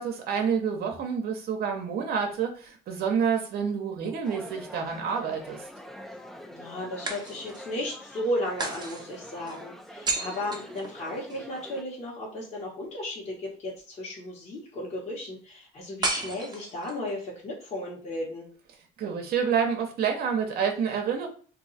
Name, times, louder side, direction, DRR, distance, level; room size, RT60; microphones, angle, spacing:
voice 1, 0.0-5.7 19.0-21.3, right 6 dB, 65° right, 2 dB, 0.7 m, -28 dB
sound 1, 4.0-5.0 7.1-7.8 8.6-11.4 16.0-17.1, right 3 dB, 25° right, 0.7 m, -34 dB
sound 2, 4.2-11.8, equal, ahead, 0.3 m, -45 dB
voice 2, 6.5-18.5, left 1 dB, 40° left, -5 dB, 1.3 m, -34 dB
2.7 x 2.3 x 4.0 m, 0.43 s
cardioid pair, 110°, 17 cm